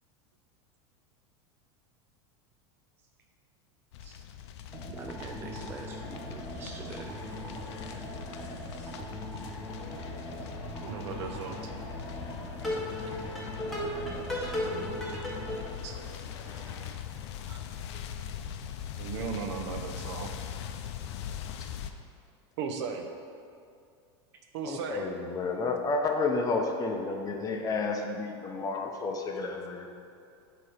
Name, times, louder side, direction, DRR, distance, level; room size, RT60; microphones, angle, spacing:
sound 1, 3.9-21.9, left 9 dB, 70° left, 0.4 m, -42 dB
sound 2, 4.7-15.6, equal, ahead, 1.4 m, -38 dB
voice 1, 4.9-7.1, right 4 dB, 15° right, 1 dB, 0.3 m, -44 dB
sound 3, 5.5-16.9, left 3 dB, 85° left, 0.9 m, -49 dB
voice 2, 10.6-11.7 14.0-14.9 15.8-16.2 16.7-17.0 17.5-17.6 17.9-18.0 19.0-20.3 22.6-23.1 24.5-25.1, right 6 dB, 75° right, 5 dB, 0.7 m, -38 dB
voice 3, 24.6-29.9, left 3 dB, 25° left, 3 dB, 0.6 m, -31 dB
7.7 x 2.9 x 4.9 m, 2.4 s
supercardioid pair, 125°, 15 cm